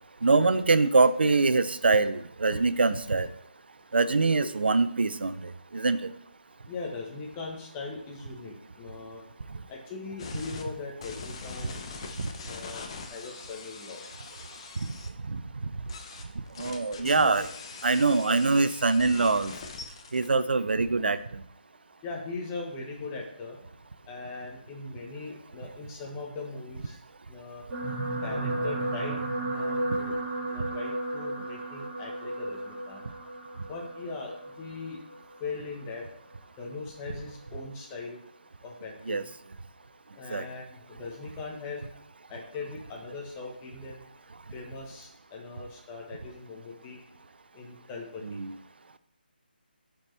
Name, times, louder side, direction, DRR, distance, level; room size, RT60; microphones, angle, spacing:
voice 1, 0.2-3.3 3.9-6.1 12.2-12.3 14.8-14.9 15.3-15.4 16.6-17.5 17.8-19.5 20.1-21.4 39.1-39.2 40.3-40.4 48.2-48.5, right 3 dB, 75° right, 14 dB, 0.6 m, -24 dB
voice 2, 6.7-9.2 9.7-14.0 17.0-17.3 22.0-23.6 24.1-27.0 27.3-27.6 28.2-30.1 30.5-33.0 33.7-35.0 35.4-36.1 36.6-38.2 38.6-39.3 40.2-41.8 42.3-44.0 44.5-47.0 47.5-48.4, left 3 dB, 15° left, -1 dB, 1.3 m, -40 dB
sound 1, 10.2-10.6 11.0-15.1 15.9-20.3, left 4 dB, 30° left, 0.8 m, -42 dB
sound 2, 27.7-36.2 36.9-37.2 37.4-37.5, right 1 dB, 15° right, 2.5 m, -34 dB
11.5 x 4.5 x 3.4 m, 0.67 s
figure-of-eight pair, 160°, 6 cm